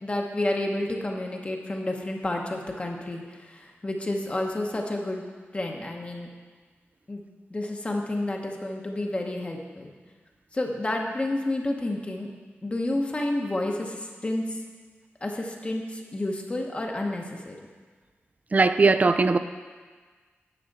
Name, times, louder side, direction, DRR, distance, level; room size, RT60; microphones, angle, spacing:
voice 1, 0.0-5.2 5.5-6.3 7.1-7.2 7.5-9.9 10.5-12.3 12.6-14.6 15.2-17.6, left 1 dB, 30° left, 1 dB, 0.9 m, -30 dB
voice 2, 18.5-19.4, right 3 dB, 35° right, 11 dB, 0.4 m, -19 dB
10.0 x 6.9 x 4.1 m, 1.5 s
wide cardioid pair, 120°, 4 cm